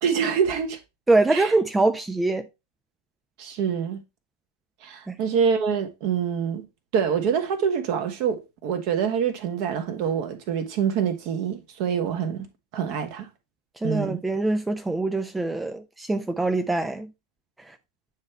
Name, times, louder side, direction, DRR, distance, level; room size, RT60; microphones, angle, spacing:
voice 1, 0.0-0.8 1.3-1.5 3.4-4.0 4.8-6.6 6.9-12.5 12.7-13.3 13.8-14.2, right 7 dB, 45° right, 1.3 m, -26 dB
voice 2, 1.1-2.5 5.1-5.2 13.8-17.1 17.7-17.8, right 2 dB, 10° right, 0.5 m, -24 dB
9.2 x 3.3 x 4.6 m
figure-of-eight pair, 90°, 0 cm